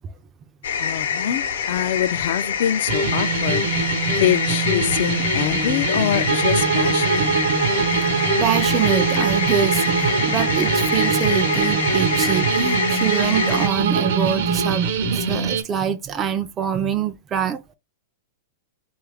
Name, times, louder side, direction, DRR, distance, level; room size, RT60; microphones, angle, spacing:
sound 1, 0.6-13.7, left 7 dB, 80° left, 0.7 m, -26 dB
voice 1, 0.8-3.7 4.1-7.3, left 11 dB, 60° left, 0.3 m, -24 dB
sound 2, 2.9-15.6, right 4 dB, 65° right, 0.7 m, -24 dB
Bowed string instrument, 6.2-14.8, right 6 dB, 90° right, 0.4 m, -25 dB
voice 2, 8.1-17.6, right 8 dB, 20° right, 0.3 m, -25 dB
3.2 x 2.3 x 3.3 m
hypercardioid pair, 145°, 0 cm